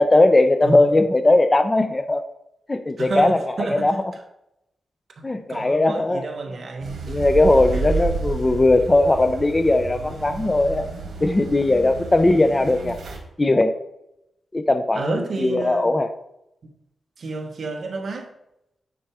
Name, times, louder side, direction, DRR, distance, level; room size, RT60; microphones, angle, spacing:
voice 1, 0.0-2.2 2.7-3.9 5.2-6.2 7.1-10.9 11.2-13.0 13.4-13.8 14.5-16.1, left 2 dB, 20° left, 0.4 m, -19 dB
voice 2, 0.6-1.0 3.0-4.0 5.2-7.2 7.7-8.0 14.9-15.9 16.6-16.7 17.2-18.3, right 3 dB, 50° right, 1.1 m, -30 dB
sound 1, 6.8-13.2, right 4 dB, 80° right, 1.7 m, -31 dB
8.7 x 4.3 x 4.8 m
wide cardioid pair, 170°, 0 cm